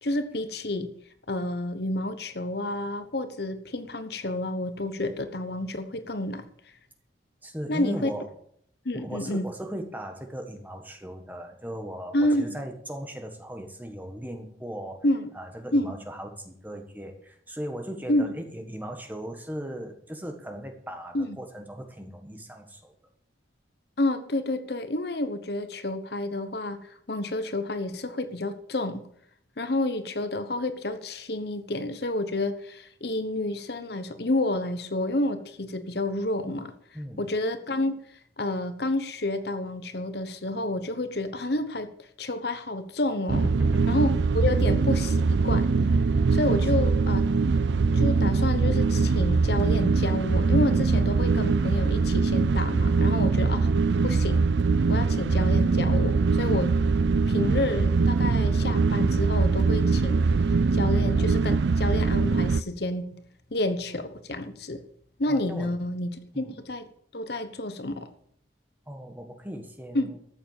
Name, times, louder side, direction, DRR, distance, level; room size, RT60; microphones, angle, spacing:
voice 1, 0.0-0.9 1.3-6.4 7.7-8.1 8.8-9.5 12.1-12.6 15.0-15.3 15.7-15.9 18.1-18.3 21.1-21.4 24.0-29.0 29.6-36.7 37.2-38.0 38.4-43.5 43.9-45.7 46.3-47.3 47.9-53.7 54.0-54.4 54.9-56.7 57.3-60.2 60.5-63.1 63.5-64.8 65.2-66.1 66.4-66.9 67.1-68.1 69.9-70.1, left 1 dB, 55° left, 11 dB, 1.0 m, -29 dB
voice 2, 7.4-8.3 8.9-15.0 15.3-22.9 36.9-37.3 43.4-43.9 46.8-46.9 65.3-65.7 66.3-66.6 68.9-70.2, equal, 10° right, 4 dB, 1.5 m, -38 dB
sound 1, 43.3-62.6, right 4 dB, 65° right, 0.4 m, -22 dB
13.5 x 7.2 x 7.3 m, 0.65 s
head